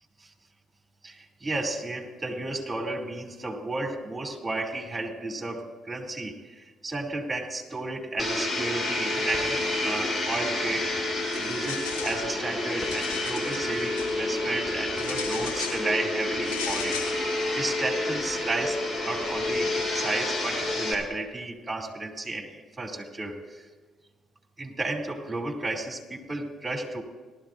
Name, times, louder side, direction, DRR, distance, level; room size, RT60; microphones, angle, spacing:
voice 1, 1.0-10.9 11.4-17.0 17.5-23.7 24.6-27.0, right 2 dB, 20° right, 1 dB, 2.9 m, -33 dB
Domestic sounds home sounds, 8.2-20.9, left 2 dB, 40° left, 2.3 m, -29 dB
sound 1, 11.2-12.3 12.7-14.1 15.0-15.8 16.4-17.2, left 6 dB, 75° left, 1.9 m, -37 dB
18.5 x 13.0 x 2.6 m, 1.4 s
hypercardioid pair, 45°, 0 cm